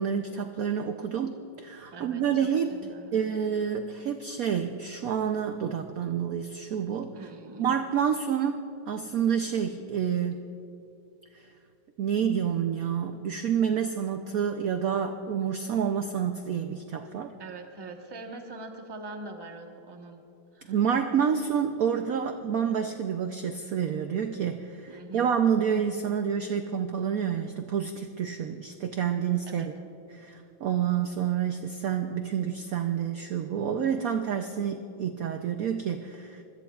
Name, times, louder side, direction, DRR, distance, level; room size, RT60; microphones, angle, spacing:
voice 1, 0.0-2.7 3.1-7.1 7.6-10.4 11.3-11.4 12.0-17.3 20.7-29.6 30.1-36.4, right 8 dB, 70° right, 6 dB, 0.8 m, -28 dB
voice 2, 1.9-3.2 7.1-7.8 17.4-20.2 20.5-20.8 24.9-25.3 29.4-29.7, right 2 dB, 20° right, 3 dB, 0.8 m, -43 dB
25.5 x 21.5 x 2.4 m, 2.7 s
omnidirectional pair, 2.2 m